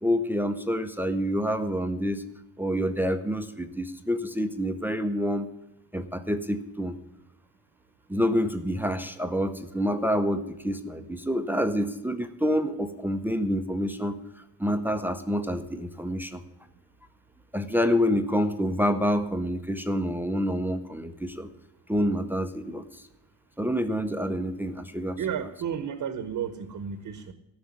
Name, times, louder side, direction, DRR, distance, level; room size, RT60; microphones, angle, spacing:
voice 1, 0.0-2.2 2.6-5.5 5.9-7.0 8.1-14.2 14.6-16.4 17.5-21.5 21.9-23.0 23.6-25.2, equal, 5° right, 9 dB, 0.7 m, -27 dB
voice 2, 25.1-27.3, right 8 dB, 55° right, 11 dB, 1.1 m, -32 dB
13.0 x 6.5 x 9.6 m, 0.89 s
cardioid pair, 150°, 39 cm